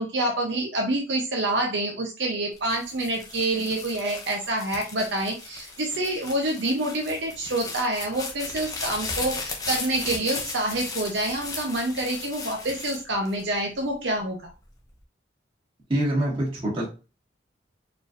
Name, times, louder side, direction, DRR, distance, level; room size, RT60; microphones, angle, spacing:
voice 1, 0.0-14.5, right 1 dB, 70° right, 1 dB, 0.8 m, -27 dB
sound 1, 2.6-13.9 14.5-15.0, left 3 dB, 20° left, 0.7 m, -36 dB
voice 2, 15.9-16.8, right 1 dB, 30° right, -4 dB, 1.8 m, -25 dB
4.4 x 3.3 x 2.6 m, 0.32 s
head